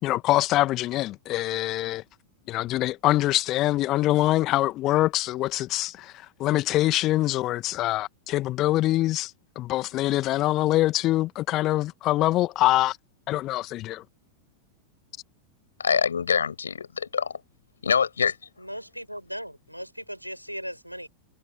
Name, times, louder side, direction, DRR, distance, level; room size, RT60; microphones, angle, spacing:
voice 1, 0.0-2.0 2.5-6.1 6.4-13.0 13.3-14.0, left 16 dB, 35° left, 1.8 m, -24 dB
voice 2, 15.8-17.4 17.8-18.4, left 6 dB, 70° left, 6.0 m, -25 dB
voice 3, 18.6-21.1, equal, 90° right, 7.1 m, -37 dB
figure-of-eight pair, 90°, 0 cm